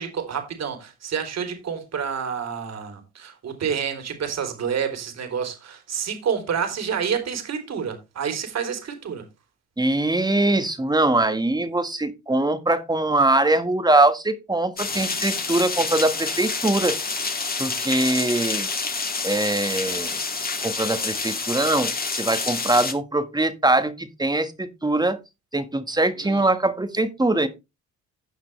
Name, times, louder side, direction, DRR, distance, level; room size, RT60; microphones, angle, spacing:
voice 1, 0.0-9.2 26.2-26.4, right 7 dB, 60° right, 3.5 m, -29 dB
voice 2, 9.8-17.0 17.6-18.7 19.2-20.2 20.6-25.2 25.5-27.5, right 2 dB, 15° right, 1.6 m, -22 dB
sound 1, 14.8-22.9, left 4 dB, 30° left, 2.4 m, -28 dB
16.5 x 5.8 x 3.3 m
cardioid pair, 90°, 30 cm